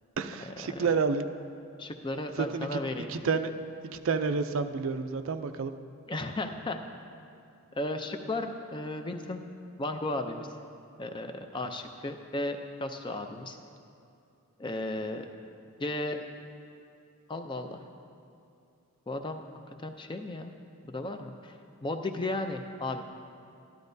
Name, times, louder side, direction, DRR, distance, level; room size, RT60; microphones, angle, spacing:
voice 1, 0.2-1.3 2.4-2.8 3.1-3.5 3.8-5.7, right 5 dB, 65° right, 9 dB, 0.4 m, -29 dB
voice 2, 1.8-3.1 6.1-6.8 7.7-9.4 9.8-10.5 11.0-13.6 14.6-15.3 15.8-16.2 17.3-17.8 19.1-19.4 19.8-20.5 20.9-23.0, left 2 dB, 20° left, 6 dB, 0.4 m, -34 dB
13.0 x 11.5 x 2.7 m, 2.6 s
head